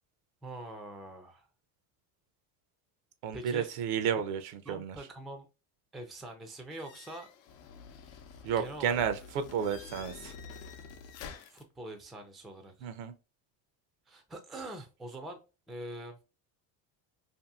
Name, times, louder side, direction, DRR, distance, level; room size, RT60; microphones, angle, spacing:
voice 1, 0.4-1.5 3.3-3.7 4.7-5.5 5.9-7.3 8.6-9.0 11.5-12.9 14.1-15.4 15.7-16.2, right 1 dB, ahead, 0.4 m, -44 dB
voice 2, 3.2-5.0 8.4-10.3 12.8-13.1, right 8 dB, 70° right, 0.7 m, -32 dB
sound 1, 6.7-11.6, left 6 dB, 75° left, 0.7 m, -48 dB
2.7 x 2.6 x 2.3 m
supercardioid pair, 105°, 44 cm